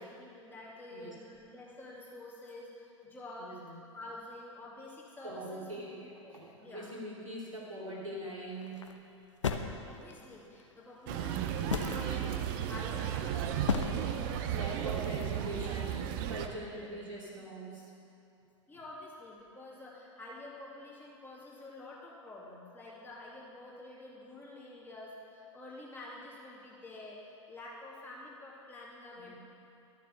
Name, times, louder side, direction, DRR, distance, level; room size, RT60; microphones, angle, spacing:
voice 1, 0.0-5.9 6.2-6.9 9.8-15.2 16.6-16.9 18.7-29.3, left 2 dB, 10° left, -5 dB, 2.6 m, -49 dB
voice 2, 3.4-3.8 5.2-8.9 14.5-17.9 29.2-29.4, right 1 dB, 90° right, -6 dB, 2.8 m, -43 dB
sound 1, 8.6-9.0 9.4-10.3 11.2-11.3 11.7-12.1 13.0-13.3 13.6-13.9, left 6 dB, 70° left, 0.8 m, -32 dB
sound 2, 11.1-16.5, right 10 dB, 40° right, 0.7 m, -34 dB
12.0 x 6.8 x 6.6 m, 2.7 s
figure-of-eight pair, 95°, 16 cm